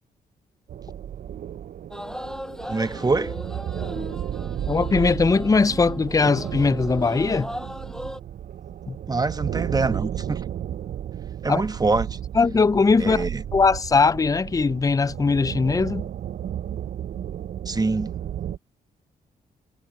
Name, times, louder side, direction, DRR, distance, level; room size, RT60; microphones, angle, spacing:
sound 1, 0.7-18.6, right 10 dB, 60° right, 0.5 m, -33 dB
sound 2, 1.9-8.2, equal, 5° left, 6.4 m, -37 dB
voice 1, 2.7-3.3 9.1-10.4 11.4-12.2 13.0-13.4 17.7-18.1, right 3 dB, 25° right, 1.1 m, -25 dB
voice 2, 4.7-7.5 8.9-9.0 11.5-11.6 12.3-16.0, left 4 dB, 20° left, 0.5 m, -20 dB
cardioid pair, 65°, 16 cm